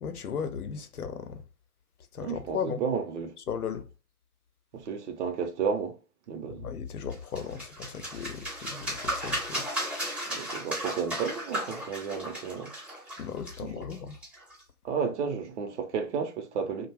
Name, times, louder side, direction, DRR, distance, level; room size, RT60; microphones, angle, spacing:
voice 1, 0.0-1.4 2.1-2.8 3.5-3.9 6.5-9.7 13.2-14.2, left 7 dB, 85° left, 0.6 m, -36 dB
voice 2, 2.2-3.3 4.7-5.9 6.3-6.7 10.3-12.7 14.8-16.9, right 6 dB, 50° right, 0.6 m, -32 dB
sound 1, 7.1-14.6, right 1 dB, 5° right, 0.5 m, -35 dB
2.5 x 2.1 x 3.2 m
figure-of-eight pair, 115°, 44 cm